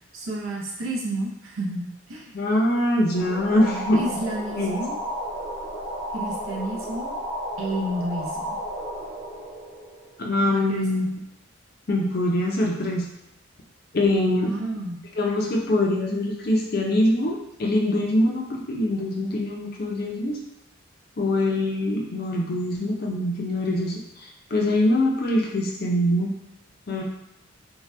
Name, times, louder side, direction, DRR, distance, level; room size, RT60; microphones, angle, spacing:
voice 1, 0.1-2.4 4.0-5.0 6.1-7.2 7.6-8.6 10.5-11.1 14.4-15.0, right 1 dB, 75° right, -1 dB, 0.6 m, -31 dB
voice 2, 2.3-4.0 4.6-4.8 10.2-11.2 11.9-13.1 13.9-14.5 15.2-20.4 21.2-24.0 24.5-26.3 26.9-27.0, left 1 dB, 45° left, 0 dB, 0.5 m, -23 dB
sound 1, 3.1-10.5, equal, 10° right, 0.8 m, -33 dB
2.7 x 2.2 x 3.1 m, 0.84 s
head